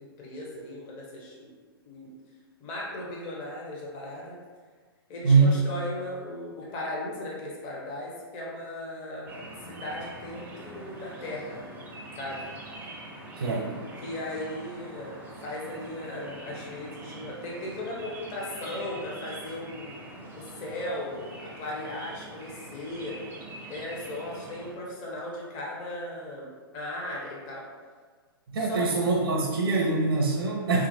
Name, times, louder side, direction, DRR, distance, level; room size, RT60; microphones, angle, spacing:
voice 1, 0.2-1.5 1.9-2.1 2.6-4.4 5.1-9.3 9.7-11.6 12.2-12.4 14.0-15.1 15.4-19.9 20.3-23.2 23.7-26.5 26.7-27.6 28.7-28.9, left 1 dB, 35° left, -4 dB, 0.7 m, -37 dB
voice 2, 5.2-5.6 13.4-13.7 28.5-30.9, right 4 dB, 75° right, 0 dB, 0.5 m, -23 dB
sound 1, 9.3-24.7, right 2 dB, 15° right, 0.4 m, -44 dB
2.9 x 2.4 x 2.6 m, 1.5 s
hypercardioid pair, 120°, 13 cm